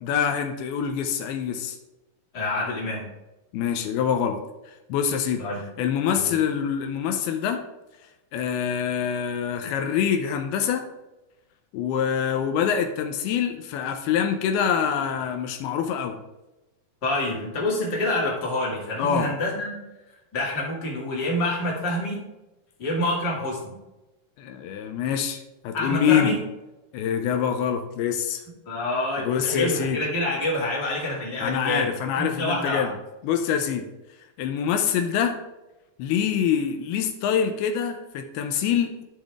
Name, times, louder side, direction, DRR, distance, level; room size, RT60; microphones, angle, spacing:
voice 1, 0.0-1.8 3.5-4.4 4.9-5.4 5.8-7.6 8.3-10.9 11.7-16.2 19.0-19.3 24.4-26.3 26.9-28.4 29.2-30.0 31.4-32.9 33.2-33.9 34.4-35.4 36.0-39.0, left 8 dB, 85° left, 6 dB, 2.6 m, -25 dB
voice 2, 2.3-3.0 5.4-5.6 6.2-6.3 17.0-19.8 20.3-22.2 22.8-23.7 25.7-26.4 28.7-32.9, left 1 dB, 30° left, -5 dB, 2.6 m, -27 dB
12.0 x 5.2 x 3.6 m, 1.0 s
omnidirectional pair, 4.4 m